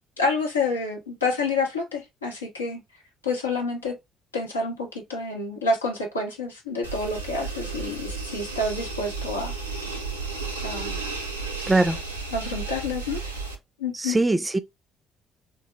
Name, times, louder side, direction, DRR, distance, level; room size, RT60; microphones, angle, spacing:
voice 1, 0.2-2.8 3.2-4.0 4.3-9.6 10.6-11.0 11.5-11.7 12.3-13.2 13.8-14.2, left 3 dB, 85° left, 0.6 m, -28 dB
sound 1, 6.8-13.6, right 4 dB, 90° right, 0.4 m, -33 dB
voice 2, 11.7-12.0 13.9-14.6, right 2 dB, 20° right, 0.4 m, -21 dB
3.4 x 2.0 x 3.0 m
figure-of-eight pair, 50°, 0 cm